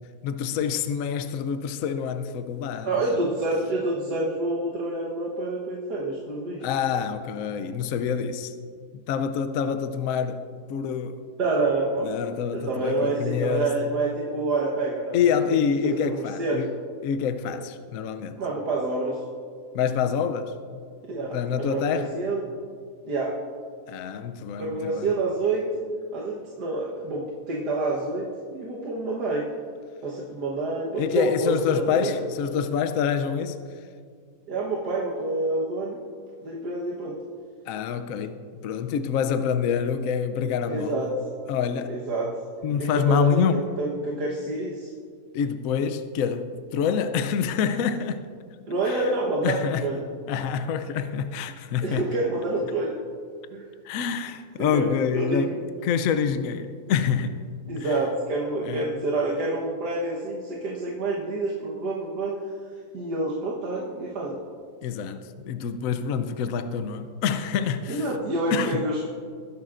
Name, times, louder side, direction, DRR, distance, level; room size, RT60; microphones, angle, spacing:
voice 1, 0.2-3.2 6.6-8.5 8.9-11.2 12.0-13.7 15.1-16.7 17.0-18.4 19.7-20.6 21.3-22.2 23.9-25.2 31.0-33.6 37.7-41.1 41.5-42.0 42.6-43.7 45.3-48.3 48.8-49.1 49.4-49.9 50.3-52.0 53.8-57.4 57.8-58.0 58.6-58.9 64.8-68.1 68.5-68.8, left 7 dB, 65° left, 0.9 m, -26 dB
voice 2, 2.9-6.7 11.4-12.1 12.5-15.2 15.8-16.6 18.4-19.2 21.1-21.4 21.7-22.4 23.1-23.4 24.6-25.9 26.1-29.4 30.0-32.2 34.5-36.0 36.4-37.2 40.7-41.1 41.9-42.3 42.8-43.4 43.8-44.9 48.7-50.0 51.8-53.0 53.5-53.7 54.6-55.4 57.7-62.4 62.9-64.4 67.9-69.1, right 2 dB, 90° right, 1.8 m, -27 dB
21.0 x 10.5 x 2.5 m
omnidirectional pair, 1.7 m